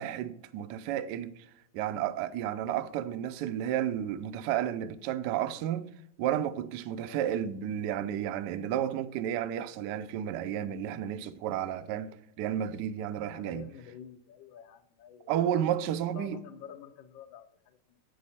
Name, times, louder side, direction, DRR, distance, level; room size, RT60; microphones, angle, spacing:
voice 1, 0.0-1.5 1.7-5.9 6.2-13.6 15.3-16.4, right 10 dB, 75° right, 0.9 m, -32 dB
voice 2, 7.0-7.4 13.3-15.4 16.1-18.0, left 9 dB, 70° left, 1.4 m, -49 dB
8.7 x 6.3 x 4.2 m
omnidirectional pair, 2.3 m